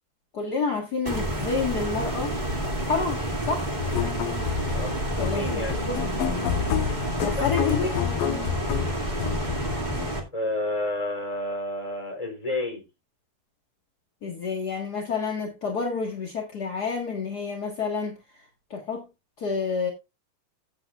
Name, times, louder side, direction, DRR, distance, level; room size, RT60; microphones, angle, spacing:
voice 1, 0.3-2.3 2.8-3.7 5.2-6.0 7.2-8.0 14.2-19.1 19.4-19.9, left 5 dB, 40° left, 1.4 m, -29 dB
sound 1, 1.0-10.2, right 1 dB, 15° right, 1.6 m, -29 dB
sound 2, 1.6-8.4, right 2 dB, 85° right, 3.4 m, -45 dB
sound 3, 3.8-10.1, left 10 dB, 85° left, 2.7 m, -30 dB
voice 2, 4.7-5.8 7.3-7.9 10.3-12.8, left 1 dB, 10° left, 3.4 m, -31 dB
16.0 x 8.0 x 2.4 m
omnidirectional pair, 4.0 m